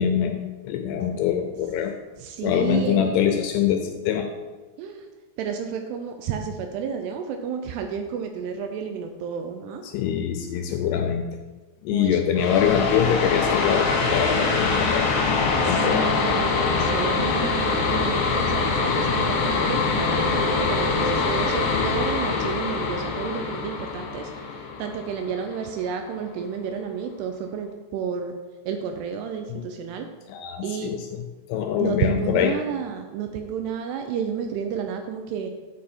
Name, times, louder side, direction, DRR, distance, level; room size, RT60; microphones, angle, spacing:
voice 1, 0.0-1.9 2.4-4.3 9.8-11.3 11.8-15.2 15.6-16.2 29.5-29.7 30.3-31.2 31.5-32.6, left 8 dB, 80° left, 5 dB, 2.5 m, -24 dB
voice 2, 2.2-3.3 4.8-5.1 5.4-9.8 11.9-12.5 15.6-24.3 24.8-28.3 28.7-30.1 30.6-30.9 31.8-35.5, right 7 dB, 80° right, 6 dB, 2.5 m, -31 dB
sound 1, 12.4-25.7, left 4 dB, 65° left, 2.0 m, -24 dB
8.7 x 5.4 x 4.3 m, 1.2 s
omnidirectional pair, 5.1 m